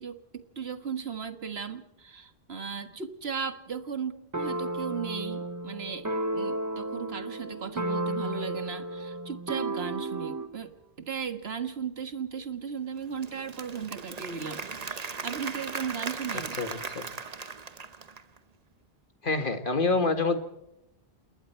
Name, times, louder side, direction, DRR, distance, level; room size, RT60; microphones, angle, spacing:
voice 1, 0.0-16.6, right 6 dB, 75° right, 9 dB, 1.8 m, -36 dB
sound 1, 4.3-10.6, right 2 dB, 20° right, 0.8 m, -33 dB
Applause / Crowd, 13.0-18.4, right 5 dB, 40° right, 1.0 m, -38 dB
voice 2, 19.2-20.4, left 3 dB, 55° left, 8 dB, 2.0 m, -26 dB
28.5 x 20.5 x 4.5 m, 0.85 s
omnidirectional pair, 1.0 m